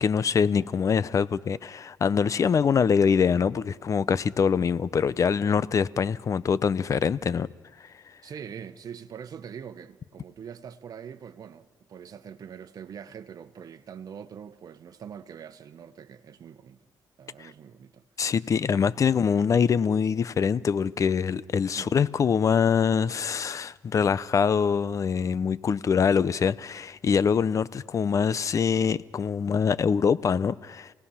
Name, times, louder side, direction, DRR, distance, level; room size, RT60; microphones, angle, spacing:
voice 1, 0.0-7.5 17.4-17.5 18.2-30.9, left 6 dB, 45° left, 0.7 m, -24 dB
voice 2, 8.2-16.8 17.2-18.3 21.8-22.0, right 7 dB, 55° right, 1.3 m, -43 dB
29.0 x 18.5 x 5.8 m
cardioid pair, 85°, 8 cm